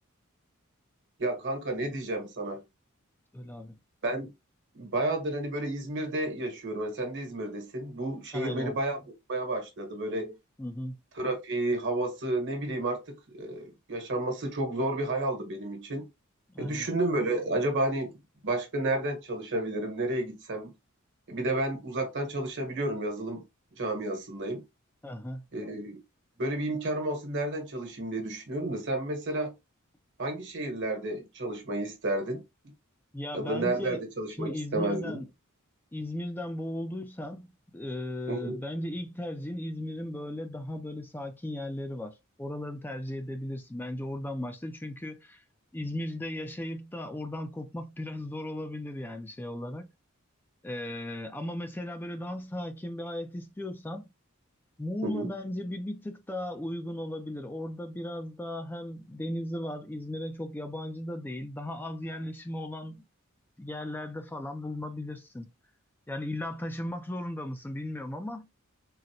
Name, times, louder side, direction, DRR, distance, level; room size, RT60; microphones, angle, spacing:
voice 1, 1.2-2.6 4.0-4.3 4.7-9.0 9.3-10.4 11.1-16.0 16.6-18.2 18.4-20.7 21.3-23.4 23.8-24.6 25.5-26.0 26.4-29.5 30.2-32.4 33.3-35.2 38.3-38.6 55.0-55.3, right 2 dB, 60° right, 1.2 m, -31 dB
voice 2, 3.3-3.7 8.3-8.7 10.6-11.0 16.5-16.9 25.0-25.4 33.1-34.0 34.4-35.3 35.9-45.4 45.7-49.9 50.6-54.1 54.8-63.0 63.6-65.5 66.1-68.5, left 1 dB, 10° left, 0.3 m, -36 dB
3.9 x 2.1 x 2.7 m
head